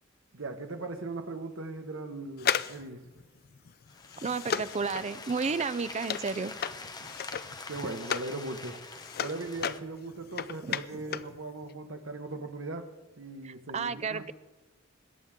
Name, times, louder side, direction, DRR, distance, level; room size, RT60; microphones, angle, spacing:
voice 1, 0.3-3.1 7.7-12.9 13.2-14.3, right 2 dB, 80° right, 5 dB, 1.3 m, -39 dB
sound 1, 2.4-8.4 8.7-11.4 11.6-11.7, left 8 dB, 50° left, 0.4 m, -35 dB
sound 2, 3.9-9.8, left 3 dB, 20° left, 0.9 m, -45 dB
voice 2, 4.2-6.5 10.6-10.8 13.7-14.3, right 5 dB, 35° right, 15 dB, 0.5 m, -32 dB
21.5 x 9.2 x 3.7 m, 1.2 s
head